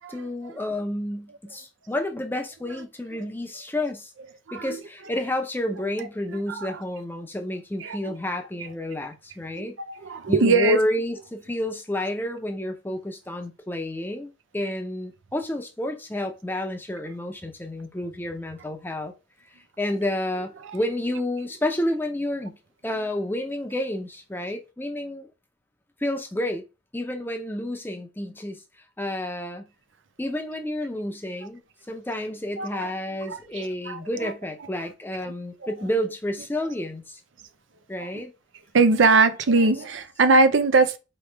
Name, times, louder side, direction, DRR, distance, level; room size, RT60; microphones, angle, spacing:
voice 1, 0.1-4.1 4.5-9.8 10.3-19.1 19.8-22.6 22.8-25.3 26.0-26.6 26.9-28.6 29.0-29.7 30.2-31.6 31.9-37.2 37.9-38.3, left 1 dB, 10° left, 0.6 m, -30 dB
voice 2, 4.5-4.8 6.3-6.8 7.8-8.2 9.6-9.7 10.0-10.8 32.6-32.9 33.2-34.3 35.2-35.3 38.0-38.1 38.7-41.0, right 3 dB, 90° right, 0.6 m, -21 dB
4.8 x 3.1 x 3.3 m
head